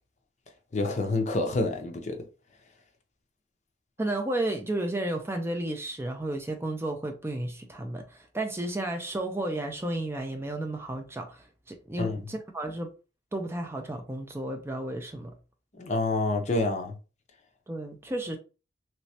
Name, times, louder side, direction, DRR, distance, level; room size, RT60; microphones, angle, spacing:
voice 1, 0.7-2.2 12.0-12.2 15.8-16.9, left 2 dB, 40° left, 0.7 m, -27 dB
voice 2, 4.0-12.9 13.3-15.3 17.7-18.4, right 1 dB, 15° right, 0.5 m, -32 dB
3.2 x 3.1 x 2.7 m
head